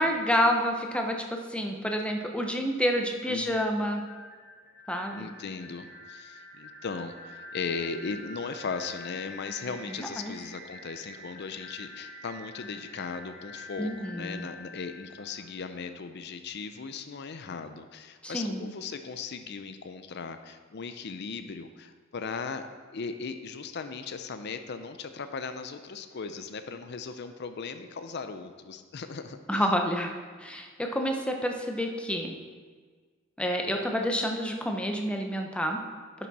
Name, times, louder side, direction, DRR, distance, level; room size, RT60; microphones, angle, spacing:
voice 1, 0.0-4.0 4.9-5.3 10.0-10.3 13.8-14.5 18.2-18.7 29.5-30.1 30.4-32.4 33.4-35.8, equal, 5° left, 3 dB, 0.8 m, -28 dB
voice 2, 3.3-3.7 5.1-29.7, left 5 dB, 55° left, 8 dB, 0.5 m, -38 dB
sound 1, 4.0-15.9, left 2 dB, 40° left, 1.3 m, -46 dB
10.5 x 6.0 x 4.2 m, 1.5 s
head